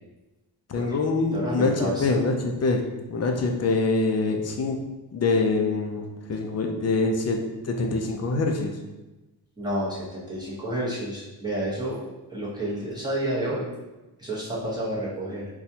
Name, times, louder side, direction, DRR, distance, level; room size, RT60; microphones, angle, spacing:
voice 1, 0.7-2.8 3.1-4.8 5.1-7.4 7.6-8.8, left 3 dB, 40° left, 3 dB, 0.5 m, -24 dB
voice 2, 1.3-2.2 9.6-12.0 12.3-13.8 14.2-15.5, right 1 dB, 10° right, -8 dB, 0.9 m, -30 dB
4.1 x 2.3 x 2.7 m, 1.1 s
wide cardioid pair, 95°, 41 cm